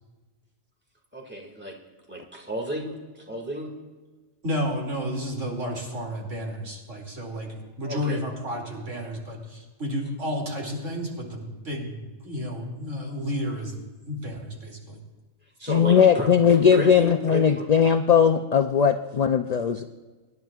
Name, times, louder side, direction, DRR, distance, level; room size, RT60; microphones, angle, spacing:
voice 1, 1.1-1.8 2.1-3.7 7.8-8.2 15.6-17.7, right 1 dB, 10° right, 0 dB, 2.0 m, -33 dB
voice 2, 4.4-13.8 14.1-15.0 15.6-15.7, equal, 75° right, 0 dB, 2.9 m, -32 dB
voice 3, 15.7-19.9, left 7 dB, 80° left, 7 dB, 0.3 m, -19 dB
24.5 x 10.5 x 2.4 m, 1.3 s
omnidirectional pair, 1.3 m